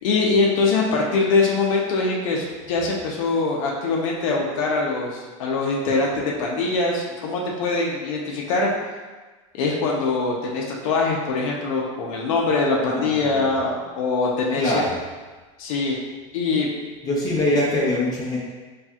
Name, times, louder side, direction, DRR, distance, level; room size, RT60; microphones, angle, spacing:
voice 1, 0.0-8.7 9.5-14.8 15.6-15.9 16.3-16.7, left 3 dB, 70° left, -2 dB, 0.8 m, -23 dB
voice 2, 12.8-13.5 14.5-15.0 17.0-18.4, left 1 dB, 20° left, -5 dB, 0.8 m, -23 dB
4.2 x 3.3 x 2.4 m, 1.3 s
supercardioid pair, 135°, 17 cm